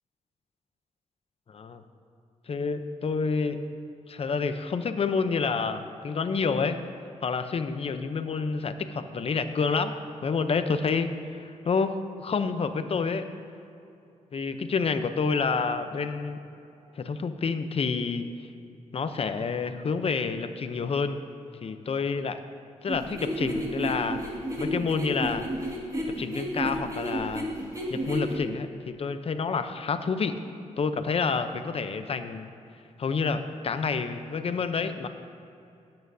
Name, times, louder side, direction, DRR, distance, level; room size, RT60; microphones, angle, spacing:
voice 1, 1.5-1.8 2.5-3.6 4.1-6.8 7.2-9.9 10.2-11.9 12.2-13.3 14.3-16.4 17.0-18.3 18.9-21.2 21.6-22.4 22.8-24.2 24.6-25.5 26.2-27.5 27.9-30.3 30.8-32.5 33.0-35.1, left 5 dB, 50° left, 9 dB, 0.7 m, -28 dB
sound 1, 22.9-28.4, right 1 dB, 25° right, 2.0 m, -31 dB
17.0 x 8.7 x 2.7 m, 2.7 s
cardioid pair, 85°, 13 cm